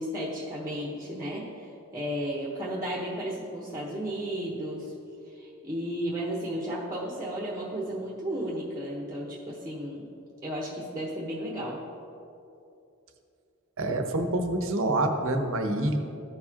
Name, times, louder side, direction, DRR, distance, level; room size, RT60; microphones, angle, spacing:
voice 1, 0.0-4.9 5.3-10.1 10.4-11.8, equal, 15° right, -3 dB, 1.0 m, -34 dB
voice 2, 13.8-16.0, right 2 dB, 65° right, 5 dB, 0.8 m, -27 dB
14.0 x 4.8 x 2.8 m, 2.7 s
head